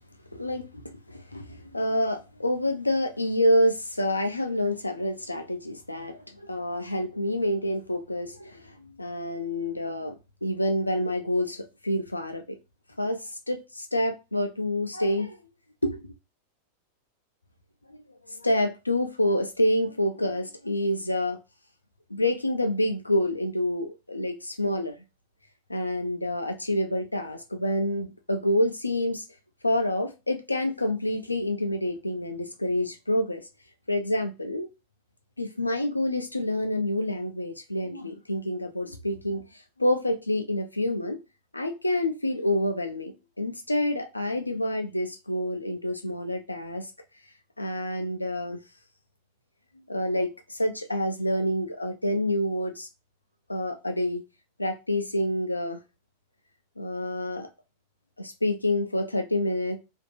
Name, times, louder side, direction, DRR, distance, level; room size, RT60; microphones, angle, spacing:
voice 1, 0.3-10.1 10.4-12.6 13.0-15.4 15.8-16.0 17.9-18.0 18.3-21.4 22.1-25.0 25.7-29.2 29.6-33.4 33.9-34.7 35.4-41.2 41.5-43.1 43.4-46.9 47.6-48.6 49.9-52.9 53.5-54.2 54.6-55.8 56.8-57.5 58.2-59.8, left 1 dB, 85° left, 0.5 m, -27 dB
2.7 x 2.5 x 2.3 m
figure-of-eight pair, 90°, 0 cm